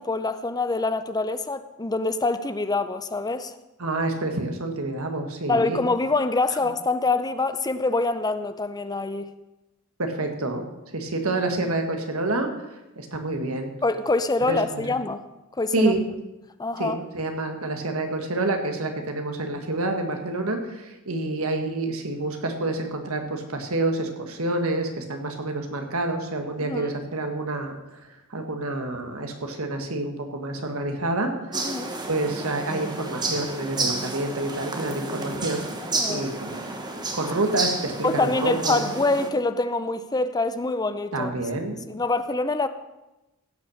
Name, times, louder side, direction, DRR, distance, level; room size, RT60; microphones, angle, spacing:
voice 1, 0.0-3.5 5.5-9.3 13.8-15.2 15.6-15.9 16.6-17.0 26.6-26.9 31.5-31.9 35.9-36.3 38.0-41.3 41.9-42.7, left 3 dB, 20° left, 11 dB, 0.5 m, -25 dB
voice 2, 3.8-5.8 10.0-10.6 10.9-12.5 13.0-13.7 14.5-14.8 15.7-16.0 16.8-27.7 28.1-31.7 32.0-35.6 36.1-36.6 37.1-38.9 41.1-41.9, right 2 dB, 75° right, 4 dB, 1.8 m, -28 dB
sound 1, 31.5-39.3, right 3 dB, 20° right, 1.2 m, -31 dB
16.0 x 6.0 x 6.5 m, 1.0 s
head